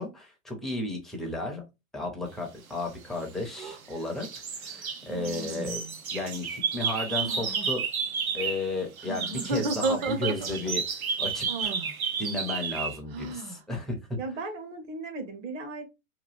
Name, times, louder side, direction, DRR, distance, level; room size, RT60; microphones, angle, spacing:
voice 1, 0.0-1.6 1.9-4.3 4.6-5.8 6.1-7.8 8.3-10.8 11.2-11.7 12.2-14.2, left 2 dB, ahead, 0.4 m, -33 dB
sound 1, 3.1-3.9 4.2-8.7 9.0-13.0, right 6 dB, 85° right, 0.8 m, -32 dB
sound 2, 3.5-3.8 5.1-6.0 7.1-7.7 9.0-10.8 11.5-11.9 13.1-13.6, right 2 dB, 45° right, 0.8 m, -33 dB
voice 2, 14.2-15.8, right 3 dB, 60° right, 1.2 m, -36 dB
3.0 x 2.3 x 2.9 m
hypercardioid pair, 115°, 42 cm